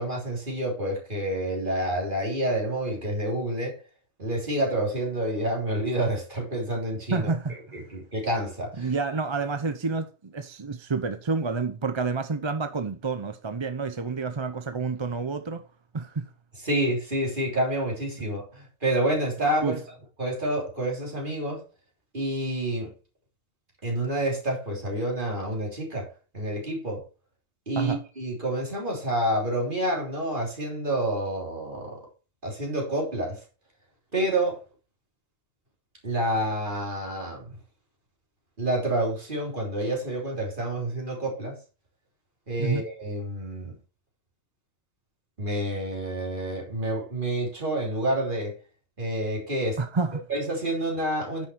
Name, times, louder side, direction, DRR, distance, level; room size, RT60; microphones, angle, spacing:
voice 1, 0.0-3.8 4.2-7.3 7.7-8.9 16.6-19.8 20.2-21.6 22.1-22.9 23.8-26.1 26.3-27.0 27.7-32.0 32.4-33.4 34.1-34.6 36.0-37.5 38.6-41.6 42.5-43.7 45.4-48.6 49.0-49.8 50.3-51.4, right 1 dB, 45° right, 3.5 m, -28 dB
voice 2, 7.1-7.6 8.8-15.6 15.9-16.3 19.6-19.8 27.8-28.0 42.6-42.8 49.8-50.2, right 4 dB, 30° right, 0.6 m, -29 dB
10.0 x 6.0 x 4.5 m
omnidirectional pair, 1.2 m